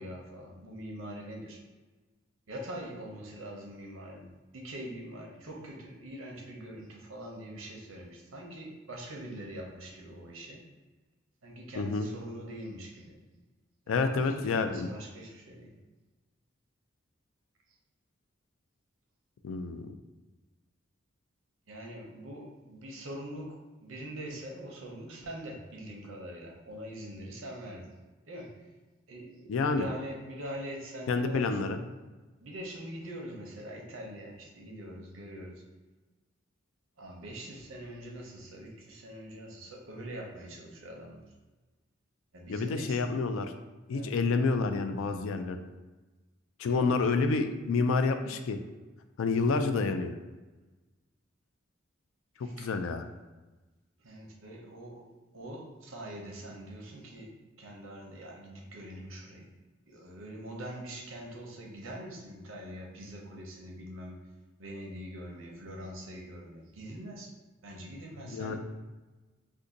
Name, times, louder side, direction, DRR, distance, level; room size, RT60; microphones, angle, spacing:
voice 1, 0.0-1.6 2.5-10.6 11.4-13.2 13.9-15.7 21.7-27.9 28.3-28.7 29.1-31.6 32.4-35.6 37.0-41.2 42.3-43.0 43.3-43.4 43.9-44.2 46.7-47.0 52.4-52.7 54.0-59.5 59.9-64.2 64.6-67.3 67.6-68.6, right 1 dB, 80° right, 0 dB, 0.7 m, -43 dB
voice 2, 11.7-12.1 13.9-14.9 19.4-19.9 29.5-29.9 31.1-31.8 42.5-43.5 43.9-45.6 46.6-48.6 49.2-50.1 52.4-53.0 68.3-68.6, left 4 dB, 80° left, 8 dB, 0.3 m, -28 dB
2.6 x 2.5 x 3.8 m, 1.2 s
head